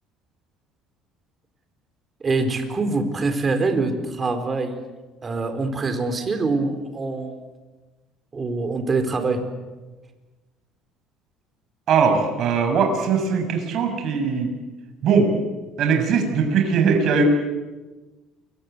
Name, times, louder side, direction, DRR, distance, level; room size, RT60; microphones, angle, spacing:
voice 1, 2.2-4.7 5.2-7.4 8.3-9.4, right 3 dB, 25° right, 7 dB, 4.3 m, -24 dB
voice 2, 11.9-14.5 15.0-15.3 15.8-17.2, right 5 dB, 55° right, 5 dB, 6.5 m, -20 dB
29.0 x 23.5 x 8.1 m, 1.2 s
cardioid pair, 120°, 0 cm